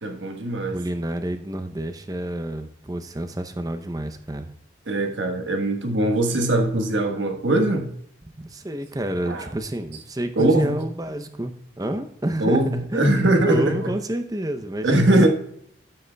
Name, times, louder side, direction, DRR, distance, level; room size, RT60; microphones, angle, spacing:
voice 1, 0.0-0.8 4.9-7.9 9.3-9.4 10.4-10.8 12.4-13.9 14.8-15.3, right 1 dB, 75° right, 1.3 m, -21 dB
voice 2, 0.7-4.5 8.3-12.6 12.9-13.1 13.5-15.3, right 1 dB, 20° right, 0.6 m, -29 dB
13.5 x 7.7 x 2.2 m
head